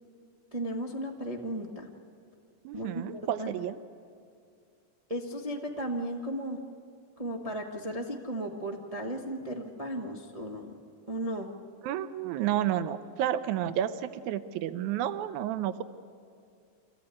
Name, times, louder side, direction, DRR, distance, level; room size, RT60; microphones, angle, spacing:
voice 1, 0.5-1.9 2.7-3.5 5.1-6.6 7.2-10.8 11.1-11.5, right 1 dB, 60° right, 0 dB, 0.3 m, -35 dB
voice 2, 2.7-3.8 11.8-15.8, right 11 dB, 80° right, 12 dB, 2.1 m, -31 dB
25.5 x 15.0 x 9.7 m, 2.4 s
omnidirectional pair, 3.4 m